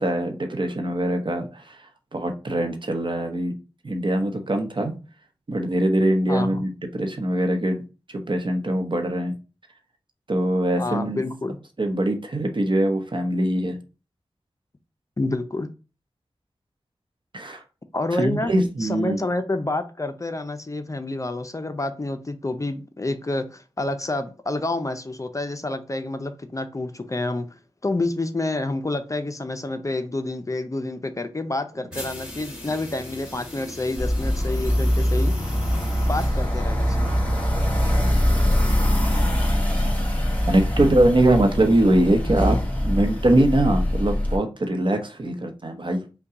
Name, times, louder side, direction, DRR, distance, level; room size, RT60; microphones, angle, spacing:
voice 1, 0.0-3.5 3.8-4.9 5.5-7.8 8.1-9.3 10.3-11.2 11.8-13.8 17.3-17.6 18.2-19.2 40.5-42.6 42.8-46.1, right 1 dB, 45° right, 0.9 m, -22 dB
voice 2, 6.3-6.6 10.8-11.6 15.2-15.7 17.9-18.5 18.8-27.5 27.8-35.3 36.0-37.1, left 2 dB, 30° left, 0.5 m, -28 dB
sound 1, 31.9-37.5, left 1 dB, 10° right, 2.4 m, -39 dB
sound 2, 34.0-44.4, equal, 15° left, 2.1 m, -23 dB
5.4 x 2.2 x 3.7 m
wide cardioid pair, 55°, 11 cm